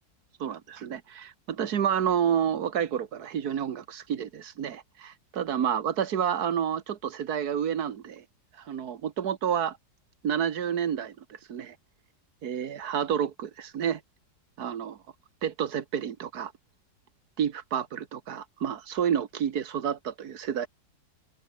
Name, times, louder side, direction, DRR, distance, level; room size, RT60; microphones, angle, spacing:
voice 1, 0.4-8.2 8.6-9.8 10.2-11.7 12.4-14.0 14.6-15.0 15.4-16.5 17.4-20.7, right 8 dB, 60° right, 1.7 m, -29 dB
omnidirectional pair, 2.0 m